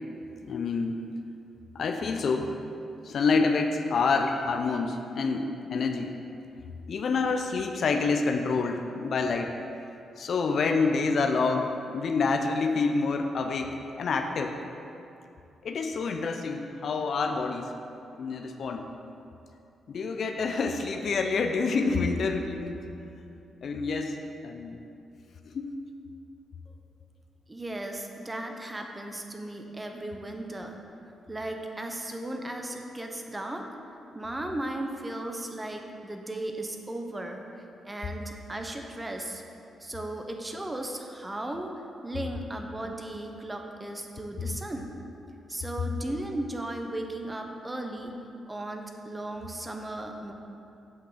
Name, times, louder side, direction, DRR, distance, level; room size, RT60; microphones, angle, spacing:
voice 1, 0.4-1.0 1.7-2.6 3.0-6.1 6.9-9.6 10.2-14.6 15.6-17.7 18.1-18.9 19.9-22.9 23.6-24.2 24.4-24.8 25.4-25.7, left 4 dB, 60° left, 5 dB, 0.6 m, -27 dB
voice 2, 27.5-30.8 31.3-33.6 34.1-37.5 37.8-39.4 39.8-41.7 42.0-44.9 45.5-48.2 48.5-50.3, right 1 dB, 20° right, 3 dB, 1.1 m, -36 dB
8.1 x 6.0 x 5.0 m, 2.7 s
hypercardioid pair, 45°, 0 cm